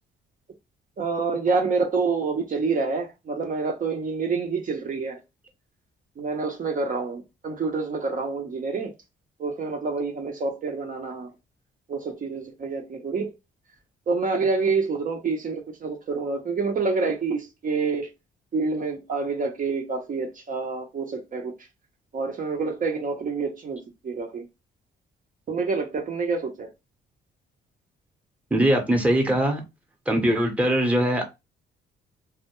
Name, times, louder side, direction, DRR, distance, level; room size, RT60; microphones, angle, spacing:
voice 1, 1.0-5.2 6.2-8.9 9.4-11.3 11.9-13.3 14.1-18.1 18.5-21.5 22.1-23.8 24.0-24.4 25.5-26.7, right 4 dB, 40° right, 0.6 m, -27 dB
voice 2, 28.5-29.6 30.1-31.2, right 1 dB, 5° right, 0.7 m, -21 dB
2.2 x 2.0 x 2.9 m
cardioid pair, 90°, 20 cm